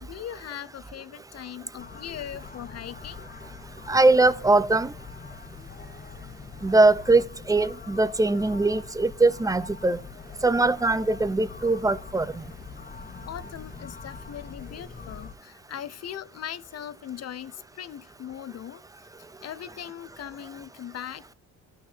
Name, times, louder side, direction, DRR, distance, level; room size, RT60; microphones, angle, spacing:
voice 1, 0.0-3.3 13.2-18.8 19.4-21.3, left 10 dB, 55° left, 0.9 m, -39 dB
sound 1, 1.8-15.4, left 5 dB, 30° left, 1.4 m, -43 dB
voice 2, 3.9-4.9 6.6-10.0 10.4-12.4, right 2 dB, 10° right, 0.7 m, -21 dB
11.5 x 6.5 x 5.5 m
cardioid pair, 90°, 30 cm